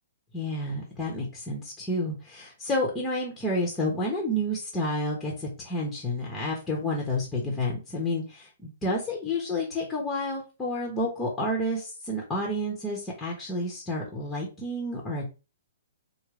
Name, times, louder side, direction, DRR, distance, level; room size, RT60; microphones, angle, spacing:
voice 1, 0.3-15.2, left 1 dB, 10° left, -1 dB, 1.0 m, -30 dB
3.6 x 2.2 x 3.3 m, 0.30 s
hypercardioid pair, 140°, 0 cm